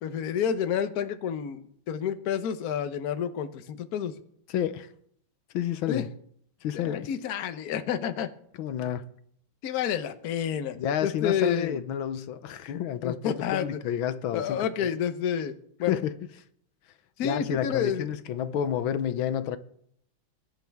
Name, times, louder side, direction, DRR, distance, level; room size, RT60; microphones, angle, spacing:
voice 1, 0.0-4.2 5.9-6.0 6.7-8.3 9.6-10.8 11.0-11.8 13.0-13.8 14.3-15.5 15.8-16.0 17.2-18.1, left 8 dB, 55° left, 1.2 m, -29 dB
voice 2, 4.5-4.9 5.5-6.1 6.6-7.1 8.6-9.1 10.8-14.9 15.9-16.1 17.2-19.6, left 9 dB, 80° left, 1.6 m, -30 dB
22.5 x 11.5 x 3.5 m
omnidirectional pair, 2.2 m